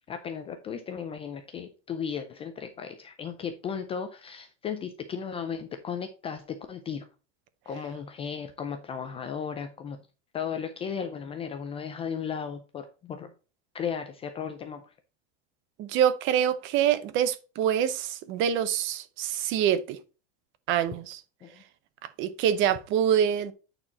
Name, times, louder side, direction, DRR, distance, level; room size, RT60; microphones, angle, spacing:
voice 1, 0.1-7.1 7.7-10.0 10.3-13.3 13.7-14.8 21.4-21.6, left 7 dB, 15° left, 0.4 m, -35 dB
voice 2, 15.8-20.0 20.7-21.2 22.2-23.5, right 9 dB, 35° right, 0.6 m, -25 dB
8.8 x 4.4 x 4.0 m
supercardioid pair, 160°, 36 cm